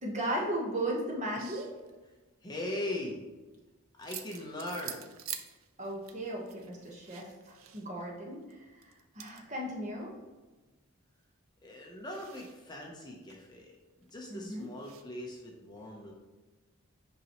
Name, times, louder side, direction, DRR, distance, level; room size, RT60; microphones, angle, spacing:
voice 1, 0.0-1.7 5.8-8.6 9.1-10.1 14.3-14.7, right 1 dB, 35° right, -2 dB, 1.3 m, -36 dB
sound 1, 1.3-2.1 4.0-8.1 8.3-8.5 8.8-9.4 10.0-10.1 12.1-13.4 14.1-14.2 14.5-15.0, right 9 dB, 75° right, 0.6 m, -46 dB
voice 2, 2.4-3.2 4.0-5.0 11.6-13.7 14.1-16.1, left 1 dB, 20° left, -2 dB, 0.9 m, -40 dB
8.1 x 5.3 x 3.1 m, 1.2 s
head